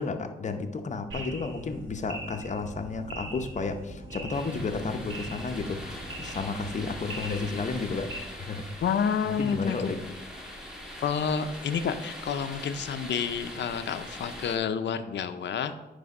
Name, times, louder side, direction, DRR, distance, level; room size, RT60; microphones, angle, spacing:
voice 1, 0.0-8.1 8.4-8.8 9.2-10.0, left 4 dB, 40° left, 6 dB, 0.7 m, -32 dB
sound 1, 1.1-8.2, right 2 dB, 90° right, 1.4 m, -41 dB
sound 2, 4.3-14.6, left 1 dB, 5° right, 1.7 m, -42 dB
voice 2, 8.8-9.9 11.0-15.7, left 7 dB, 70° left, 10 dB, 0.6 m, -29 dB
9.4 x 3.4 x 5.3 m, 1.0 s
cardioid pair, 100°, 19 cm